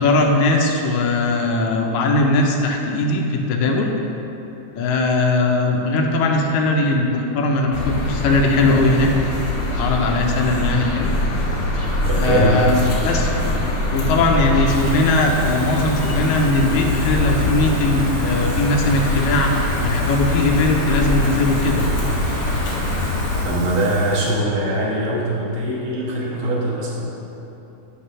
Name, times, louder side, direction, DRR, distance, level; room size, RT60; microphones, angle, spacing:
voice 1, 0.0-3.9 4.7-9.3 9.8-11.1 12.2-12.8 13.0-13.3 13.9-21.8, left 2 dB, 80° left, 2 dB, 1.9 m, -19 dB
sound 1, 7.7-23.5, left 1 dB, 55° left, 1.4 m, -23 dB
sound 2, 10.5-19.5, equal, 15° right, 1.0 m, -34 dB
voice 2, 12.0-12.8 23.4-27.1, right 1 dB, 50° right, -5 dB, 1.1 m, -21 dB
Water tap faucet / Fill (with liquid), 14.5-24.4 24.8-25.1, right 6 dB, 75° right, 1.8 m, -39 dB
9.4 x 3.5 x 5.4 m, 3.0 s
omnidirectional pair, 3.4 m